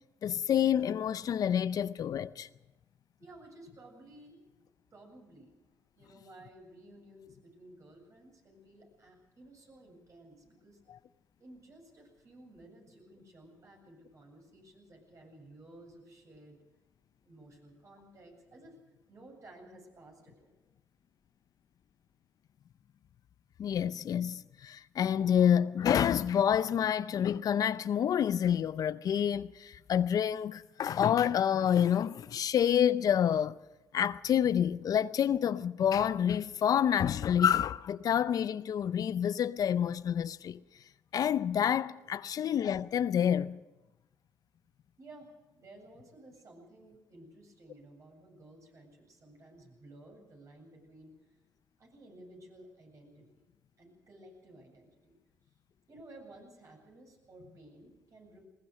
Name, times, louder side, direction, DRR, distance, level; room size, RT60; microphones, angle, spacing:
voice 1, 0.2-2.5 23.6-33.6 33.9-40.6 41.1-43.6, left 9 dB, 60° left, 0.6 m, -28 dB
voice 2, 3.2-4.4 4.9-5.5 6.0-10.8 11.4-16.6 17.2-18.8 19.1-20.5 45.0-45.3 45.5-51.1 51.8-53.4 53.8-55.2 55.9-58.5, right 1 dB, 50° right, 7.9 m, -55 dB
21.0 x 19.5 x 6.5 m
supercardioid pair, 65°, 7 cm